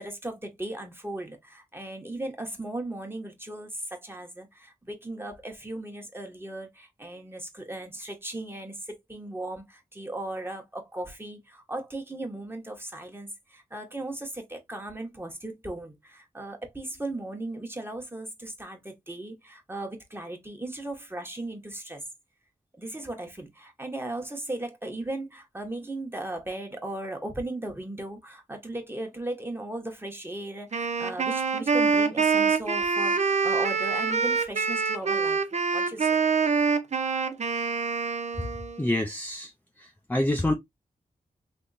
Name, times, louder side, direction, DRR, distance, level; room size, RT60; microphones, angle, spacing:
voice 1, 0.0-22.0 22.8-35.4 35.7-36.2, right 1 dB, 15° right, 1.2 m, -37 dB
Wind instrument woodwind instrument, 30.7-38.9, right 5 dB, 50° right, 0.6 m, -25 dB
voice 2, 38.8-39.5 39.8-40.5, left 1 dB, 10° left, 0.6 m, -27 dB
3.5 x 2.9 x 2.6 m
wide cardioid pair, 75°, 15 cm